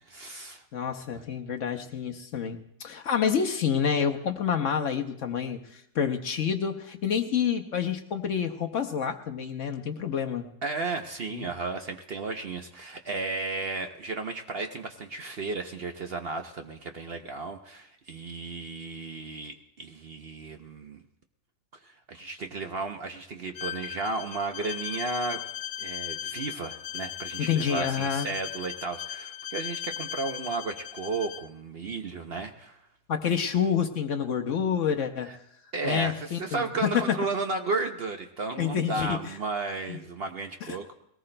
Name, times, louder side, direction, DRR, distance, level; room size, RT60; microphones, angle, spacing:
voice 1, 0.0-0.6 1.1-1.2 10.6-21.0 22.1-25.4 25.8-32.8 35.3-35.4 35.7-40.9, right 3 dB, 50° right, 5 dB, 0.7 m, -34 dB
voice 2, 0.7-10.5 11.3-11.5 27.4-28.3 33.1-35.3 35.8-36.9 38.6-39.3 39.9-40.0 40.6-40.8, left 7 dB, 60° left, 5 dB, 1.0 m, -28 dB
Bowed string instrument, 23.6-31.5, left 11 dB, 85° left, 1.2 m, -38 dB
21.5 x 18.0 x 2.2 m, 0.74 s
omnidirectional pair, 1.7 m